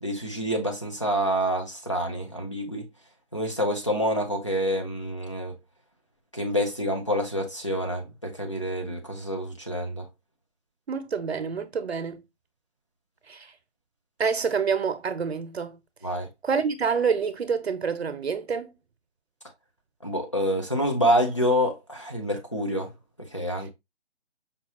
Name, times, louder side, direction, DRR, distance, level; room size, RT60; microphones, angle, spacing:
voice 1, 0.0-2.8 3.3-5.5 6.3-10.0 16.0-16.3 20.0-22.9 23.3-23.7, equal, 25° left, 0.5 m, -27 dB
voice 2, 10.9-12.2 13.3-13.5 14.2-15.8 16.4-18.7, right 6 dB, 65° right, 0.6 m, -27 dB
5.2 x 2.3 x 2.8 m
hypercardioid pair, 175°, 34 cm